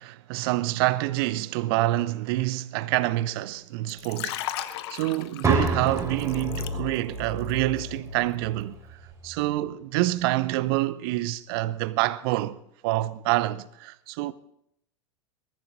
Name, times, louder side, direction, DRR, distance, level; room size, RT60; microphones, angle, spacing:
voice 1, 0.0-8.8 9.2-12.6 12.8-14.3, right 17 dB, 50° right, 0.7 m, -27 dB
Liquid, 3.9-7.2 7.5-7.8, left 13 dB, 55° left, 1.0 m, -36 dB
sound 1, 5.4-9.4, right 3 dB, 20° right, 5.1 m, -30 dB
21.0 x 14.0 x 4.1 m
figure-of-eight pair, 85°, 16 cm